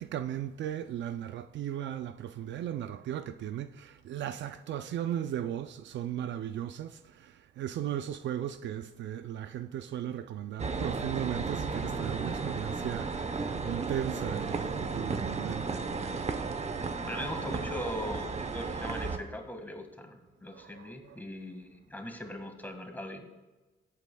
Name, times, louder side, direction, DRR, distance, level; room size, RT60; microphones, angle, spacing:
voice 1, 0.0-15.8 20.5-21.2, right 11 dB, 65° right, 0.5 m, -36 dB
sound 1, 10.6-19.2, right 4 dB, 35° right, 0.9 m, -34 dB
voice 2, 17.0-23.3, left 1 dB, 10° left, 1.7 m, -40 dB
22.0 x 8.4 x 2.3 m
cardioid pair, 90°, 20 cm